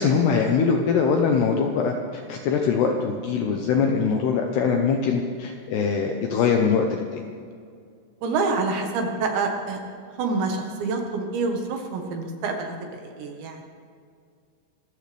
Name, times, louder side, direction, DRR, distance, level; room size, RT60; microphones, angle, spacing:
voice 1, 0.0-7.2, left 5 dB, 75° left, 2 dB, 2.5 m, -22 dB
voice 2, 8.2-9.8 10.2-13.6, right 3 dB, 70° right, 3 dB, 3.5 m, -27 dB
26.5 x 14.5 x 3.5 m, 2.2 s
omnidirectional pair, 5.9 m